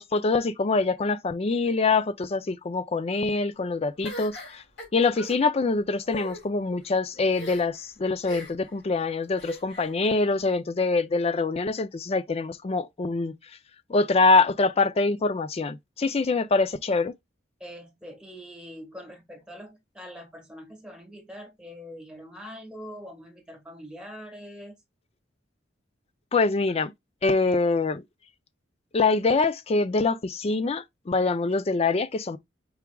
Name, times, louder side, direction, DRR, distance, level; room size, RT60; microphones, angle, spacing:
voice 1, 0.0-4.6 4.9-13.3 13.9-17.1 26.3-26.9 27.2-28.0 28.9-32.4, left 3 dB, 35° left, 0.4 m, -24 dB
sound 1, 4.0-5.4 6.0-6.4 7.3-7.8 8.2-8.7 9.4-9.9, equal, 75° left, 2.7 m, -40 dB
voice 2, 17.6-24.7, equal, 5° right, 1.5 m, -43 dB
4.8 x 4.7 x 2.3 m
head